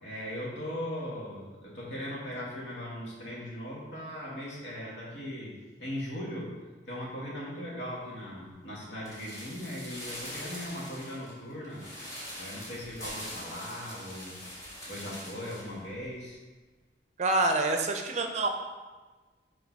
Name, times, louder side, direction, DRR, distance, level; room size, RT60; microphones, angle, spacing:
voice 1, 0.0-6.6 6.9-11.8 12.4-14.4 14.9-16.4, equal, 70° left, -5 dB, 1.7 m, -39 dB
sound 1, 9.0-15.7 16.0-16.1, equal, 20° left, 1.9 m, -43 dB
voice 2, 17.2-18.5, right 2 dB, 40° right, 4 dB, 0.5 m, -26 dB
6.5 x 3.3 x 4.5 m, 1.3 s
head